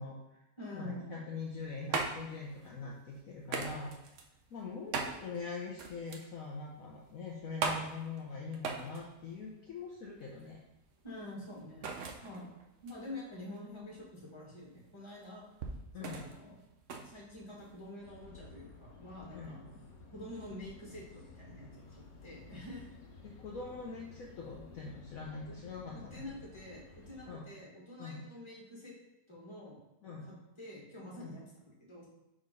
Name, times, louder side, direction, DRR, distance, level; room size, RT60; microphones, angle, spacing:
voice 1, 0.0-0.4 0.7-4.1 4.5-10.6 15.9-16.3 19.3-19.5 23.2-26.2 27.3-27.5 28.0-28.3 30.0-30.3 31.2-31.4, left 4 dB, 60° left, -2 dB, 1.1 m, -43 dB
voice 2, 0.6-1.2 11.0-11.9 12.2-12.5 12.8-15.4 16.0-16.6 17.0-19.8 20.1-22.8 25.5-25.6 25.9-28.9 29.3-29.8 30.1-32.1, left 1 dB, 15° left, -5 dB, 1.8 m, -47 dB
sound 1, 1.4-18.0, right 4 dB, 60° right, 0.9 m, -41 dB
sound 2, 18.0-27.4, left 3 dB, 75° left, 1.8 m, -54 dB
4.9 x 4.3 x 5.3 m, 0.94 s
omnidirectional pair, 1.8 m